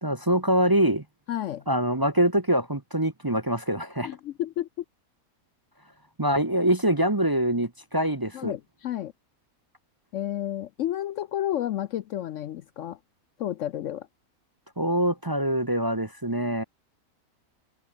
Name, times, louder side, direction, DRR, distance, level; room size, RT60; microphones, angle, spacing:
voice 1, 0.0-1.0 1.7-4.1 6.2-8.5 14.8-16.6, right 1 dB, 15° right, 0.9 m, -24 dB
voice 2, 1.3-1.6 4.0-4.8 8.3-9.1 10.1-13.0 13.4-14.1, left 12 dB, 65° left, 0.8 m, -31 dB
omnidirectional pair, 1.5 m